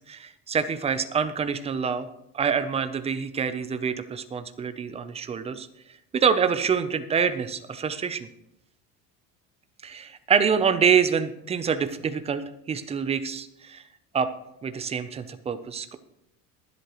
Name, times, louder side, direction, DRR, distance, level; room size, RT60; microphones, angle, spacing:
voice 1, 0.1-2.1 2.3-5.7 6.1-8.3 9.8-13.8 14.1-14.3 14.6-16.0, right 6 dB, 15° right, 11 dB, 0.5 m, -26 dB
22.0 x 8.1 x 3.0 m, 0.83 s
cardioid pair, 160°, 38 cm